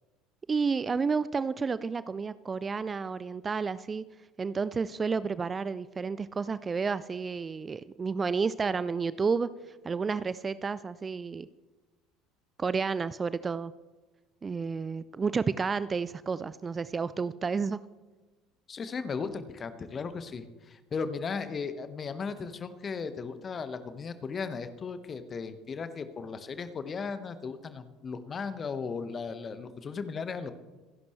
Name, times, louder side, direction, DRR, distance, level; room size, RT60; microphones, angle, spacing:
voice 1, 0.5-4.0 4.4-9.5 9.8-11.5 12.6-13.7 14.4-17.8, right 5 dB, 25° right, 16 dB, 0.5 m, -31 dB
voice 2, 18.7-30.5, left 5 dB, 30° left, 11 dB, 1.4 m, -36 dB
27.5 x 11.0 x 3.3 m, 1.2 s
figure-of-eight pair, 65°, 0 cm